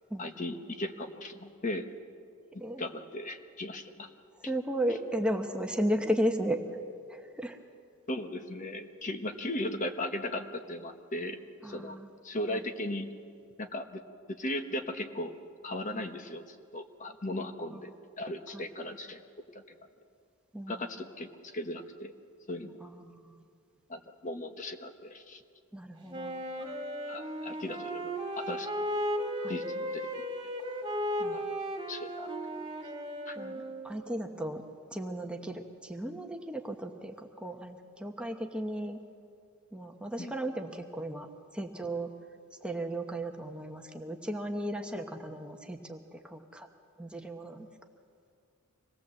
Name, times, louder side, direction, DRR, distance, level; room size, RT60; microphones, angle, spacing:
voice 1, 0.2-1.9 2.5-4.1 8.1-11.4 11.6-12.0 12.2-13.2 13.6-14.0 14.3-15.4 15.6-19.2 19.5-19.6 20.7-22.1 22.5-22.8 23.9-25.4 26.6-26.7 27.1-28.9 29.5-30.1 31.3-31.4 31.9-32.3 33.2-33.4 40.2-40.3, left 1 dB, 35° left, 7 dB, 1.2 m, -37 dB
voice 2, 4.5-6.6 7.1-7.6 11.6-12.1 12.5-12.7 15.9-16.0 17.7-17.9 18.5-18.7 20.5-20.9 22.8-23.4 25.7-26.4 29.4-29.6 31.2-31.4 33.4-34.6 34.9-39.0 39.7-41.3 41.5-42.1 42.6-46.7 47.0-47.7, right 1 dB, 5° right, 3 dB, 1.0 m, -35 dB
Wind instrument woodwind instrument, 26.1-34.1, equal, 20° right, 2.3 m, -35 dB
25.5 x 19.0 x 7.7 m, 2.3 s
head